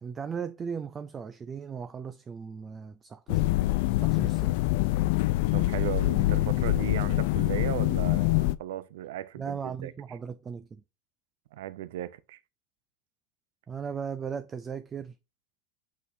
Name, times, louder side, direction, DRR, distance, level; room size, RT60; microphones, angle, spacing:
voice 1, 0.0-4.5 9.4-10.8 13.7-15.2, right 6 dB, 20° right, 0.4 m, -37 dB
sound 1, 3.3-8.5, left 18 dB, 70° left, 0.4 m, -25 dB
voice 2, 5.5-9.9 11.5-12.4, right 12 dB, 90° right, 0.6 m, -36 dB
6.2 x 5.9 x 2.6 m
supercardioid pair, 150°, 0 cm